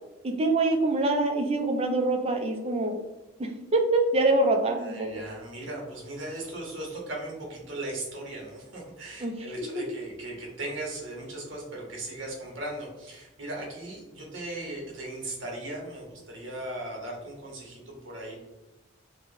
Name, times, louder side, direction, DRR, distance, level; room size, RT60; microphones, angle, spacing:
voice 1, 0.2-3.0 3.4-5.2 9.2-9.8, right 2 dB, 30° right, 4 dB, 0.4 m, -25 dB
voice 2, 4.8-18.4, right 1 dB, 65° right, -2 dB, 1.0 m, -38 dB
3.1 x 2.1 x 3.1 m, 1.0 s
head